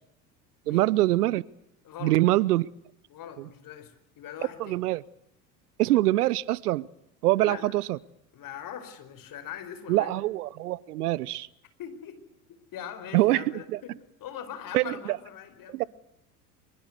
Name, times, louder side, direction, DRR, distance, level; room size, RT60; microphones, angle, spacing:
voice 1, 0.7-1.4 2.0-2.7 4.6-5.0 5.8-6.9 7.2-8.0 9.9-11.5 13.1-13.4 13.7-13.8 14.7-15.2 15.7-15.9, right 16 dB, 70° right, 0.9 m, -24 dB
voice 2, 1.8-2.2 3.1-4.8 7.4-7.7 8.3-10.1 11.8-12.2 12.7-15.9, left 9 dB, 45° left, 4.9 m, -41 dB
24.5 x 23.0 x 8.2 m
hypercardioid pair, 80°, 48 cm